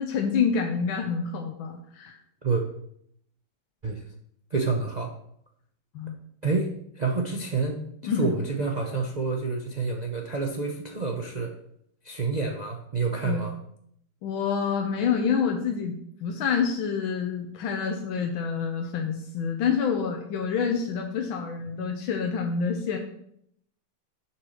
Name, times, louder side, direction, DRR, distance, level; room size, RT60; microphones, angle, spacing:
voice 1, 0.0-2.2 6.0-6.2 8.0-8.3 13.2-13.4 14.2-23.0, left 6 dB, 85° left, 2 dB, 1.7 m, -27 dB
voice 2, 4.5-5.1 6.4-6.7 6.9-11.5 12.0-13.5, right 4 dB, 65° right, 1 dB, 0.4 m, -28 dB
7.2 x 6.0 x 6.4 m, 0.71 s
omnidirectional pair, 2.1 m